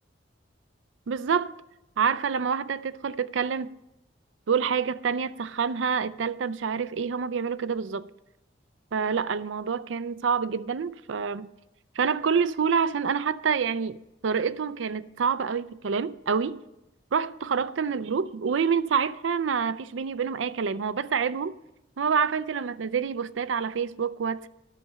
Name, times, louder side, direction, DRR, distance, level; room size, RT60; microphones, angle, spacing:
voice 1, 1.1-1.5 2.0-3.7 4.5-8.1 8.9-11.5 12.0-16.6 17.1-21.5 22.0-24.5, right 6 dB, 80° right, 0.5 m, -27 dB
11.0 x 6.7 x 7.4 m
head